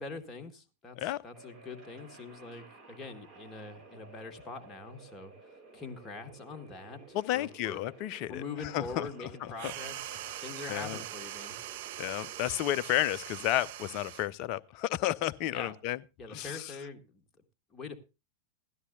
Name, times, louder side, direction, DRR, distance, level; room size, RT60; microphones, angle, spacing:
voice 1, 0.0-7.8 8.3-10.1 10.4-11.6 15.4-15.7 16.2-17.2 17.7-18.0, left 4 dB, 20° left, 1.8 m, -43 dB
sound 1, 1.3-12.6, right 3 dB, 30° right, 2.4 m, -54 dB
voice 2, 7.1-8.4 8.7-9.7 10.7-11.0 12.0-16.0 16.3-16.7, left 14 dB, 40° left, 0.5 m, -32 dB
sound 2, 9.5-14.4, right 13 dB, 50° right, 0.6 m, -42 dB
16.5 x 13.0 x 2.6 m
figure-of-eight pair, 90°, 0 cm